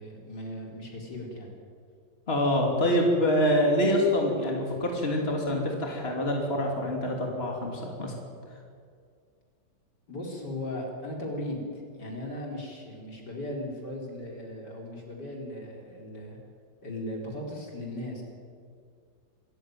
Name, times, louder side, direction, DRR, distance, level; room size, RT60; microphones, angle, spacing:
voice 1, 0.0-1.5 10.1-16.4 16.8-18.2, left 1 dB, 70° left, 0 dB, 4.9 m, -37 dB
voice 2, 2.3-8.1, left 1 dB, 35° left, 0 dB, 3.3 m, -26 dB
26.0 x 14.5 x 9.4 m, 2.2 s
omnidirectional pair, 1.9 m